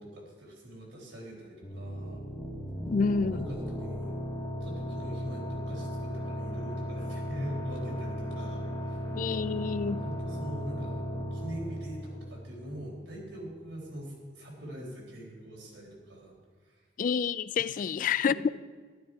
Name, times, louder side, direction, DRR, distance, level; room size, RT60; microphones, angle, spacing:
voice 1, 0.0-2.2 3.3-4.1 4.6-9.1 10.0-11.0 11.3-16.3 16.7-16.8 17.6-17.7 18.2-18.3, equal, 80° right, -3 dB, 4.2 m, -43 dB
sound 1, 1.6-13.0, equal, 20° left, 1.5 m, -36 dB
voice 2, 2.9-3.5 9.1-10.0 17.0-18.5, left 5 dB, 45° left, 17 dB, 0.3 m, -28 dB
12.0 x 12.0 x 4.7 m, 1.5 s
head